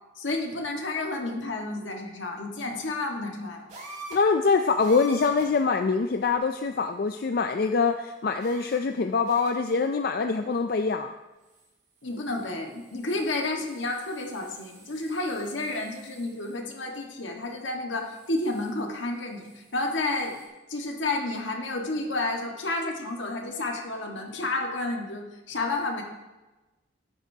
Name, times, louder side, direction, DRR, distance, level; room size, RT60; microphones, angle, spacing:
voice 1, 0.1-3.7 12.0-20.4 20.7-26.0, left 2 dB, 80° left, 2 dB, 1.6 m, -31 dB
sound 1, 3.7-4.4 4.8-5.6 6.3-6.4 8.4-9.0 9.3-9.9 11.4-11.7 12.0-16.6 18.0-18.8 19.2-20.5, right 2 dB, 40° right, 2.7 m, -48 dB
voice 2, 4.1-11.1, left 4 dB, 50° left, 6 dB, 0.4 m, -24 dB
13.5 x 9.8 x 2.8 m, 1.1 s
head